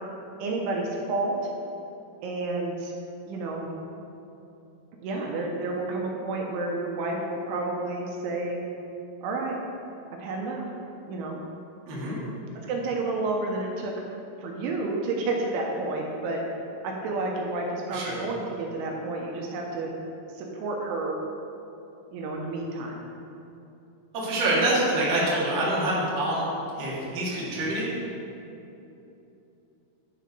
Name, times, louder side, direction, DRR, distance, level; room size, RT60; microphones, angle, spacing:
voice 1, 0.4-1.5 2.2-2.9 3.3-3.7 5.0-8.7 9.2-9.6 10.1-10.7 11.1-11.4 12.6-13.9 14.4-16.4 16.8-19.9 20.3-21.2 22.1-23.0, right 2 dB, 75° right, -1 dB, 3.1 m, -30 dB
voice 2, 24.1-26.5 26.8-27.9, right 1 dB, 55° right, -8 dB, 1.3 m, -26 dB
10.0 x 4.7 x 5.4 m, 2.9 s
omnidirectional pair, 5.8 m